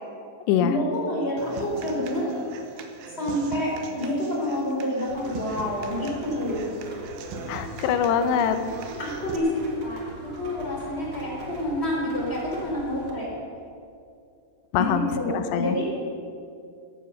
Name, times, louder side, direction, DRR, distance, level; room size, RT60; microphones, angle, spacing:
voice 1, 0.6-2.3 3.2-6.6 9.0-13.3 14.7-15.8, left 1 dB, 15° left, -4 dB, 3.6 m, -28 dB
Human voice / Acoustic guitar, 1.4-9.4, right 3 dB, 70° right, 2.7 m, -40 dB
Rain, 5.1-13.1, right 2 dB, 45° right, 2.2 m, -42 dB
voice 2, 7.5-8.6 14.7-15.8, left 8 dB, 90° left, 9 dB, 3.1 m, -23 dB
14.0 x 11.0 x 6.9 m, 2.4 s
omnidirectional pair, 4.8 m